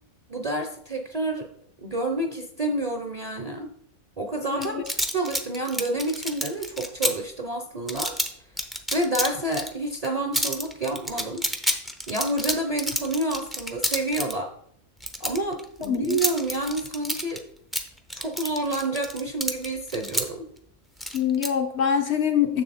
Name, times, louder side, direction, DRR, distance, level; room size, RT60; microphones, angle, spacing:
voice 1, 0.3-1.5 1.8-3.7 4.2-4.7 5.1-8.1 8.9-11.5 12.1-14.5 15.2-17.4 18.1-20.5, right 2 dB, 35° right, 4 dB, 0.6 m, -29 dB
voice 2, 4.5-4.8 15.9-16.2 21.1-22.6, left 8 dB, 60° left, 6 dB, 0.8 m, -24 dB
sound 1, 4.6-7.1 7.9-8.3 8.6-9.7 9.9-10.1 10.3-14.3 15.0-17.4 17.7-20.2 21.0-21.5, equal, ahead, 0.3 m, -28 dB
6.9 x 6.6 x 4.2 m, 0.67 s
omnidirectional pair, 1.4 m